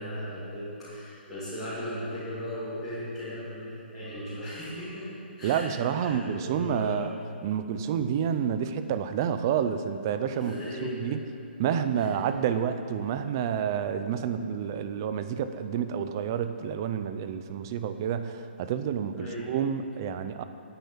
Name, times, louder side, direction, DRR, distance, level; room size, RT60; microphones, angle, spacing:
voice 1, 0.0-5.1 5.4-5.7 6.0-7.1 10.3-11.1 11.9-12.1 19.1-19.5, equal, ahead, -18 dB, 2.9 m, -37 dB
voice 2, 5.4-10.5 10.8-11.2 11.6-20.4, right 8 dB, 20° right, 10 dB, 0.4 m, -29 dB
9.9 x 9.3 x 8.7 m, 2.6 s
hypercardioid pair, 175°, 6 cm